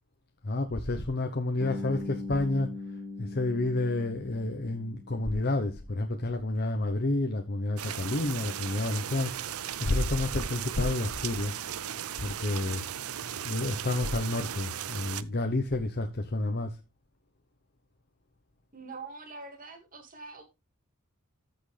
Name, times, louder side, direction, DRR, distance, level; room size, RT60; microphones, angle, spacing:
voice 1, 0.4-2.7 3.2-11.6 12.2-12.8 13.4-16.8, left 2 dB, 45° left, 0.9 m, -30 dB
Bass guitar, 1.6-5.6, left 3 dB, 10° right, 2.8 m, -40 dB
sound 1, 7.8-15.2, right 10 dB, 80° right, 0.7 m, -37 dB
voice 2, 18.7-20.4, right 3 dB, 40° right, 2.2 m, -44 dB
14.0 x 6.0 x 3.4 m
head